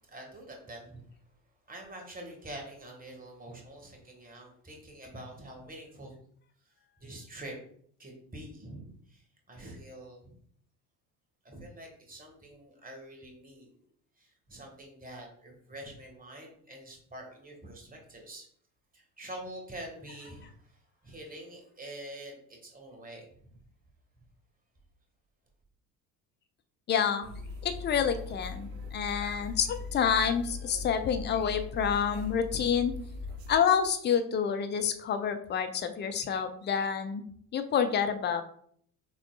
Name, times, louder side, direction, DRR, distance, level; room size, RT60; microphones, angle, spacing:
voice 1, 0.1-1.0 1.7-6.1 7.0-7.6 8.0-10.3 11.4-13.7 14.2-18.5 18.9-23.6, right 1 dB, 15° right, 1 dB, 1.5 m, -46 dB
voice 2, 26.9-27.3 27.6-32.9 33.5-37.2 37.5-38.4, left 7 dB, 25° left, 8 dB, 0.4 m, -28 dB
sound 1, 27.2-33.6, left 3 dB, 75° right, 0.7 m, -40 dB
6.1 x 3.6 x 2.3 m, 0.62 s
figure-of-eight pair, 55°, 50 cm